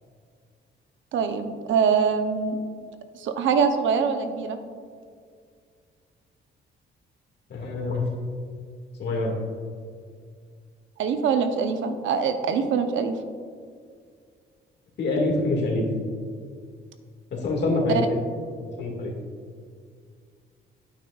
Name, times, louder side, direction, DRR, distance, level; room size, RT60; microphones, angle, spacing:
voice 1, 1.1-2.6 3.1-4.6 11.0-13.1 17.9-18.1, right 6 dB, 75° right, 8 dB, 0.7 m, -23 dB
voice 2, 7.5-8.0 9.0-9.3 15.0-15.9 17.3-18.2 18.6-19.1, left 2 dB, 60° left, -1 dB, 1.9 m, -25 dB
9.0 x 8.5 x 2.4 m, 2.1 s
cardioid pair, 90°, 20 cm